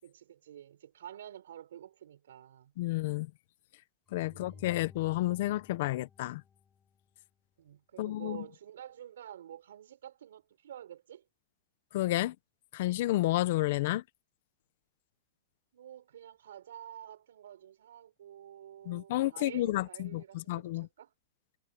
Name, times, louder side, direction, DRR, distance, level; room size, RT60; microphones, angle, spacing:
voice 1, 0.0-2.7 4.3-4.7 7.6-11.2 15.7-21.1, right 10 dB, 85° right, 6.2 m, -49 dB
voice 2, 2.8-3.3 4.1-6.4 8.0-8.4 11.9-12.3 12.7-14.0 18.9-20.9, left 17 dB, 55° left, 0.9 m, -31 dB
sound 1, 4.1-7.3, left 6 dB, 15° left, 4.9 m, -56 dB
supercardioid pair, 155°, 0 cm